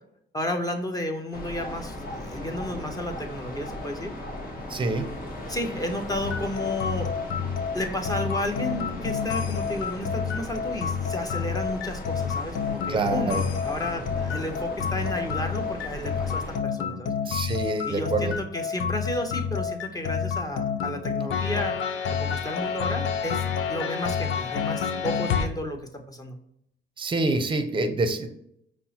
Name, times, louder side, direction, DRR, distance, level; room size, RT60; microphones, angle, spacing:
voice 1, 0.3-4.1 5.5-7.1 7.7-17.1 17.8-23.4 23.7-26.4, left 1 dB, 20° left, 4 dB, 0.7 m, -32 dB
sound 1, 1.3-16.6, left 1 dB, 45° left, 1.2 m, -38 dB
voice 2, 4.7-5.1 12.9-13.5 17.3-18.3 27.0-28.3, right 2 dB, 25° right, 8 dB, 0.6 m, -26 dB
sound 2, 6.2-25.5, left 7 dB, 80° left, 0.5 m, -29 dB
5.2 x 2.1 x 2.8 m, 0.73 s
cardioid pair, 90°, 20 cm